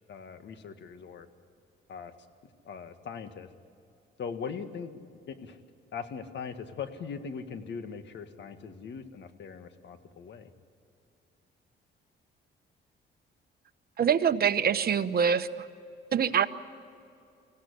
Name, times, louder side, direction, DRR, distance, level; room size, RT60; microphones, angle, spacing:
voice 1, 0.1-1.3 1.9-2.1 2.7-3.5 4.2-5.0 5.3-5.6 5.9-10.5, left 6 dB, 65° left, 9 dB, 1.8 m, -40 dB
voice 2, 14.0-15.5 16.1-16.4, right 7 dB, 50° right, 9 dB, 1.1 m, -24 dB
25.0 x 16.5 x 10.0 m, 2.6 s
cardioid pair, 90°, 20 cm